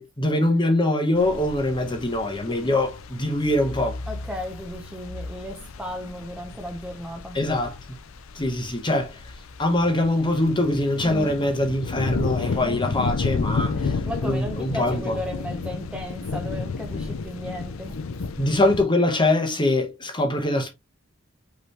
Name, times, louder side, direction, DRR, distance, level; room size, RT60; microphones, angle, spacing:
voice 1, 0.0-4.0 7.3-7.7 8.3-9.2 9.6-13.9 14.2-15.2 18.4-20.7, left 1 dB, 25° left, 0.9 m, -23 dB
sound 1, 1.2-18.8, left 4 dB, 80° left, 0.6 m, -32 dB
voice 2, 4.1-7.4 11.0-11.4 12.4-13.1 13.7-18.0, equal, 5° right, 0.7 m, -35 dB
5.3 x 3.1 x 3.2 m
head